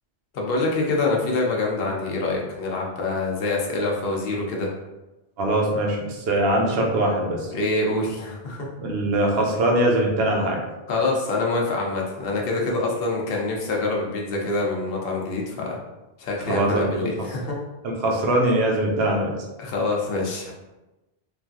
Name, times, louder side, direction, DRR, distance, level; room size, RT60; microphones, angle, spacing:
voice 1, 0.3-4.7 7.5-8.7 10.9-15.8 16.2-17.6 19.6-20.5, left 2 dB, 65° left, -1 dB, 0.8 m, -25 dB
voice 2, 5.4-7.5 8.8-10.6 16.5-16.9 17.8-19.3, right 1 dB, 70° right, 0 dB, 0.9 m, -22 dB
3.1 x 2.5 x 2.3 m, 1.1 s
omnidirectional pair, 1.1 m